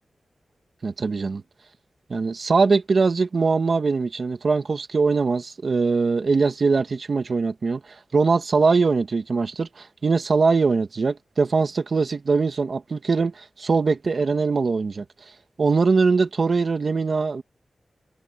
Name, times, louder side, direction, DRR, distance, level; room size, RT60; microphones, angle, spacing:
voice 1, 0.8-1.4 2.1-15.0 15.6-17.4, right 4 dB, 55° right, 1.8 m, -22 dB
wide cardioid pair, 95°, 0 cm